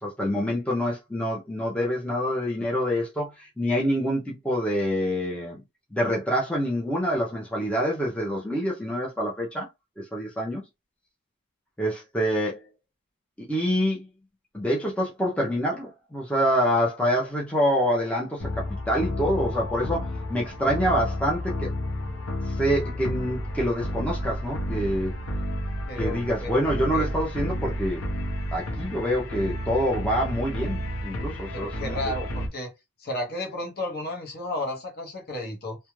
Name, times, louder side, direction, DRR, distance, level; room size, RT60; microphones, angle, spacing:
voice 1, 0.0-5.6 5.9-9.7 10.0-10.6 11.8-12.7 13.4-14.1 14.5-21.7 22.5-25.1 26.0-28.0 28.5-32.1, equal, 5° left, 0.5 m, -26 dB
sound 1, 18.4-32.5, left 1 dB, 75° left, 0.7 m, -31 dB
voice 2, 25.9-26.7 26.9-27.1 31.5-32.7 33.0-35.8, left 1 dB, 45° left, 0.8 m, -33 dB
2.3 x 2.1 x 3.0 m
head